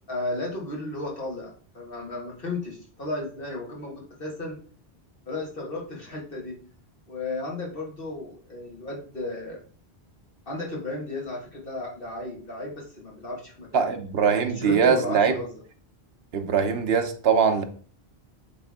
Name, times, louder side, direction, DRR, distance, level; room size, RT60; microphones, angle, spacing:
voice 1, 0.1-4.6 5.3-6.6 7.1-9.6 10.5-13.9 14.4-15.5, left 2 dB, 60° left, 2.1 m, -34 dB
voice 2, 13.7-15.3 16.3-17.6, right 6 dB, 75° right, 1.1 m, -22 dB
8.3 x 3.5 x 3.6 m
omnidirectional pair, 1.1 m